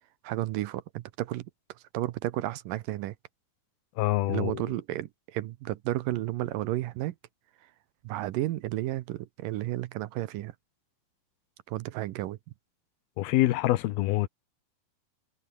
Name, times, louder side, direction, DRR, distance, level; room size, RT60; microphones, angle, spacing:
voice 1, 0.2-3.2 4.3-7.2 8.0-10.5 11.7-12.4, right 15 dB, 75° right, 2.3 m, -32 dB
voice 2, 4.0-4.6 13.2-14.3, left 16 dB, 90° left, 2.9 m, -25 dB
omnidirectional pair, 4.3 m